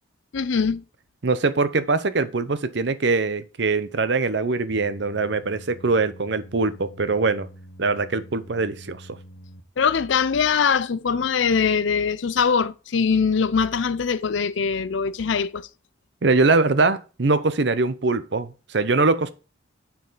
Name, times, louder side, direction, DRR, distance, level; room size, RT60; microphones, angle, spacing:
voice 1, 0.3-0.8 9.8-15.7, left 6 dB, 75° left, 0.5 m, -22 dB
voice 2, 1.2-7.5 7.8-9.1 16.2-19.3, right 3 dB, 65° right, 0.7 m, -22 dB
sound 1, 4.7-9.6, right 1 dB, 45° left, 1.3 m, -45 dB
9.3 x 4.7 x 4.0 m
head